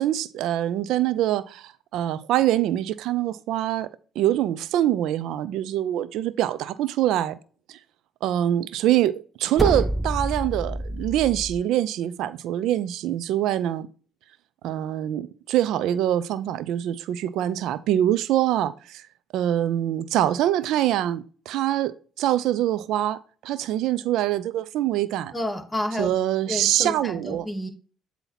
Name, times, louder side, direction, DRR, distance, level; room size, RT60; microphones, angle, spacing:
voice 1, 0.0-3.9 4.2-7.3 7.7-7.8 8.2-13.9 14.6-19.1 19.3-25.3 25.9-27.5, right 12 dB, 70° right, 0.5 m, -24 dB
sound 1, 9.6-11.6, right 1 dB, 10° right, 0.3 m, -27 dB
voice 2, 25.3-26.1 26.5-27.7, left 1 dB, 15° left, 2.2 m, -30 dB
8.0 x 2.8 x 5.8 m
hypercardioid pair, 60°, 0 cm